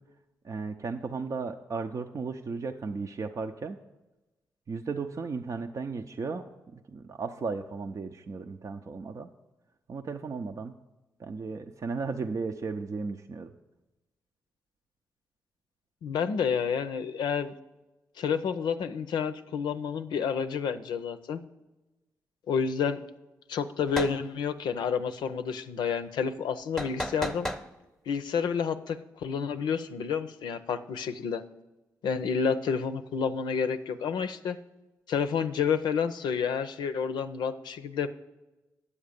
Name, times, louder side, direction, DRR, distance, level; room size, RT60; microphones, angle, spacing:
voice 1, 0.4-3.8 4.7-9.3 9.9-10.7 11.2-13.5, right 4 dB, 45° right, 4 dB, 0.6 m, -35 dB
voice 2, 16.0-17.5 18.2-21.4 22.5-23.0 23.5-27.5 28.1-31.4 32.0-34.6 35.1-38.1, left 6 dB, 75° left, 9 dB, 0.6 m, -29 dB
sound 1, 23.9-24.2 26.8-27.7, equal, 5° left, 0.9 m, -33 dB
9.8 x 7.2 x 5.1 m, 1.1 s
hypercardioid pair, 40°, 8 cm